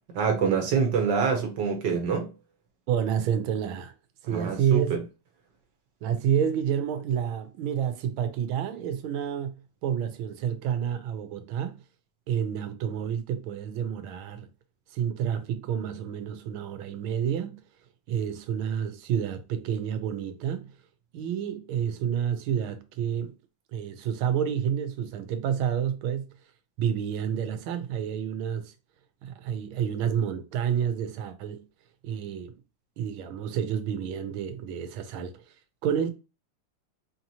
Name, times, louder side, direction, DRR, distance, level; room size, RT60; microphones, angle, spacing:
voice 1, 0.1-2.3 4.3-5.0, right 6 dB, 65° right, 1.4 m, -25 dB
voice 2, 2.9-3.9 4.2-5.0 6.0-9.5 9.8-11.8 12.3-14.5 14.9-17.6 18.1-20.7 21.1-23.3 23.7-26.3 26.8-28.7 29.2-31.6 32.0-32.5 33.0-35.4 35.8-36.1, right 8 dB, 85° right, 1.5 m, -29 dB
4.4 x 2.9 x 2.7 m
omnidirectional pair, 2.2 m